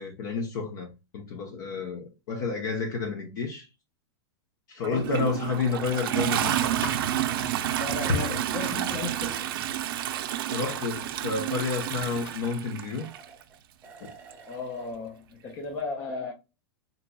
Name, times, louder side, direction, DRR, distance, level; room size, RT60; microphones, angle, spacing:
voice 1, 0.0-3.7 4.7-6.9 10.5-13.1, left 4 dB, 45° left, 0.8 m, -30 dB
voice 2, 4.8-5.1 7.8-9.5 14.5-16.3, left 3 dB, 20° left, 0.5 m, -35 dB
Toilet flush, 4.8-13.3 14.3-14.4, right 12 dB, 55° right, 0.5 m, -30 dB
sound 1, 5.8-12.4, left 4 dB, 75° left, 1.3 m, -39 dB
sound 2, 9.1-9.2 12.9-13.6 13.8-14.9, right 4 dB, 15° right, 0.9 m, -50 dB
3.9 x 2.9 x 2.2 m
supercardioid pair, 165°, 14 cm